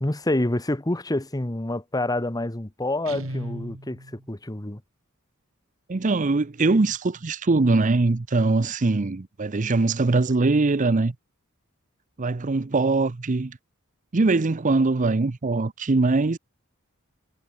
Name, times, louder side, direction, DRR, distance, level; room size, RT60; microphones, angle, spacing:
voice 1, 0.0-4.8, left 1 dB, 20° left, 1.2 m, -27 dB
Guitar, 3.0-4.3, right 1 dB, 70° right, 5.0 m, -36 dB
voice 2, 5.9-11.1 12.2-13.6 14.1-16.4, right 3 dB, 35° right, 0.6 m, -22 dB
head